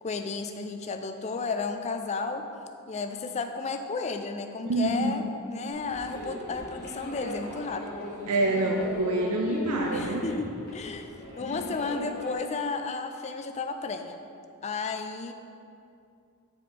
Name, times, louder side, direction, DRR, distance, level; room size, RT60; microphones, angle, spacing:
voice 1, 0.0-2.5 2.9-8.1 9.9-11.1 11.4-14.2 14.6-15.3, left 4 dB, 30° left, 7 dB, 0.3 m, -33 dB
voice 2, 4.7-5.1 8.3-10.2, right 2 dB, 80° right, 0 dB, 0.5 m, -26 dB
sound 1, 5.7-12.3, equal, 45° left, 1.3 m, -38 dB
6.6 x 4.7 x 3.8 m, 2.5 s
head